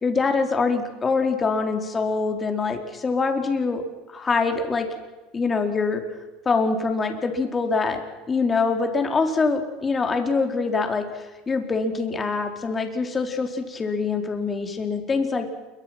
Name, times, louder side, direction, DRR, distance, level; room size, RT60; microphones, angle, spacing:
voice 1, 0.0-3.8 4.1-4.9 5.3-6.0 6.4-8.0 8.3-15.5, left 4 dB, 25° left, 4 dB, 4.3 m, -24 dB
28.5 x 23.5 x 6.1 m, 1.2 s
hypercardioid pair, 90°, 0 cm